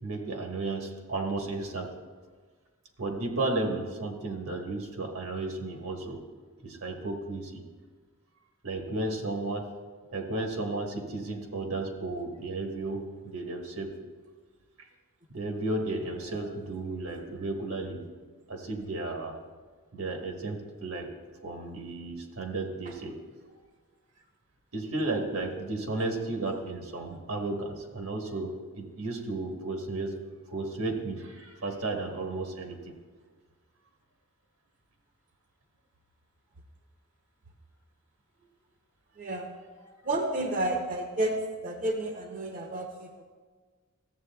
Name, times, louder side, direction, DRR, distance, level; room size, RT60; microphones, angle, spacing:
voice 1, 0.0-1.9 3.0-6.2 6.6-7.6 8.6-9.7 10.1-13.9 15.3-18.0 18.5-19.4 19.9-21.1 21.4-23.2 24.7-30.2 30.5-33.0 39.8-39.9, right 2 dB, 85° right, 3 dB, 1.3 m, -33 dB
voice 2, 39.2-39.5 40.0-43.2, right 1 dB, 40° right, 3 dB, 0.6 m, -31 dB
14.0 x 7.8 x 2.3 m, 1.5 s
head